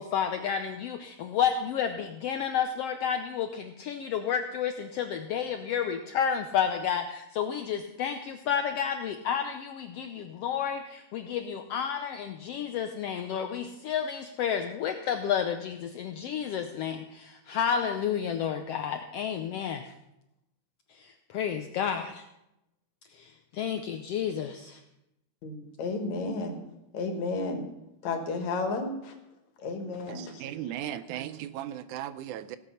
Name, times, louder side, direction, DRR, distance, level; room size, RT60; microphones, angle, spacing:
voice 1, 0.0-19.8 21.0-22.2 23.2-24.8, left 8 dB, 90° left, 1.3 m, -31 dB
voice 2, 25.4-26.5 26.9-27.6 28.0-29.2 29.6-30.7, left 3 dB, 65° left, 2.8 m, -32 dB
voice 3, 30.4-32.6, right 11 dB, 80° right, 2.0 m, -36 dB
17.5 x 8.1 x 5.7 m
omnidirectional pair, 3.6 m